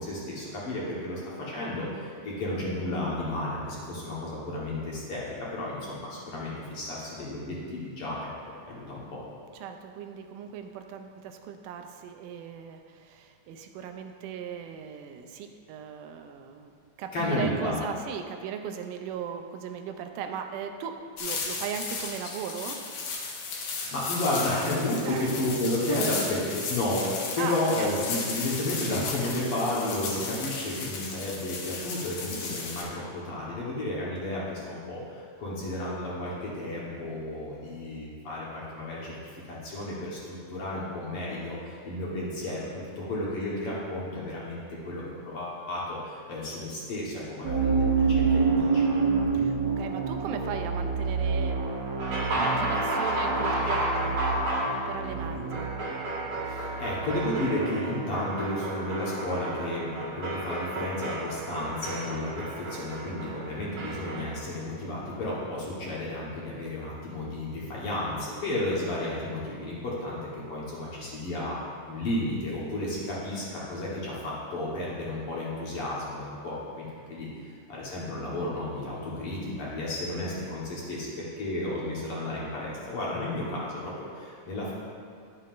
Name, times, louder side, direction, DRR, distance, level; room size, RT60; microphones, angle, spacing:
voice 1, 0.0-8.2 8.7-9.2 17.1-17.9 23.5-44.6 44.8-48.8 56.4-71.6 71.9-84.7, left 1 dB, 55° left, -6 dB, 1.9 m, -32 dB
voice 2, 9.6-16.7 17.0-22.8 25.0-25.3 25.9-26.2 26.5-26.6 27.4-28.0 49.3-51.6 51.9-54.2 54.9-55.7, right 7 dB, 90° right, 6 dB, 2.1 m, -37 dB
sound 1, 21.2-32.8, left 4 dB, 80° left, 2.5 m, -35 dB
sound 2, 47.4-57.4, right 5 dB, 70° right, 1.8 m, -28 dB
sound 3, 52.0-64.3, right 1 dB, 55° right, 2.5 m, -32 dB
11.0 x 7.4 x 2.5 m, 2.2 s
omnidirectional pair, 3.6 m